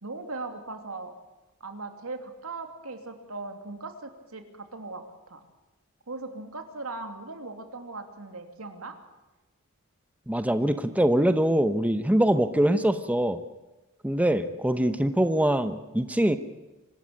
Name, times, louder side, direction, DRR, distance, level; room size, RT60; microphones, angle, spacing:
voice 1, 0.0-1.1 1.6-5.4 6.1-9.0, right 3 dB, 85° right, 6 dB, 2.8 m, -39 dB
voice 2, 10.3-13.4 14.0-16.4, right 1 dB, 5° right, 10 dB, 0.9 m, -23 dB
25.0 x 13.0 x 8.7 m, 1.1 s
head